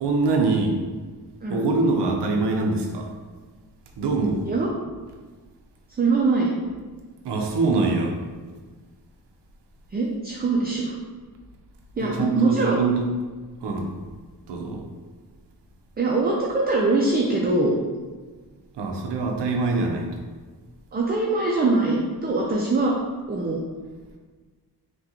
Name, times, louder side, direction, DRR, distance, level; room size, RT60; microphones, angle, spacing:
voice 1, 0.0-0.8 1.5-3.1 4.0-4.4 7.2-8.2 12.0-13.1 13.6-13.9 14.5-14.8 18.7-20.1, right 3 dB, 85° right, 1 dB, 0.6 m, -24 dB
voice 2, 6.0-6.5 9.9-11.0 12.0-12.8 16.0-17.8 20.9-22.9 23.3-23.6, right 3 dB, 25° right, -2 dB, 0.4 m, -22 dB
3.6 x 2.2 x 2.8 m, 1.4 s
cardioid pair, 70°, 41 cm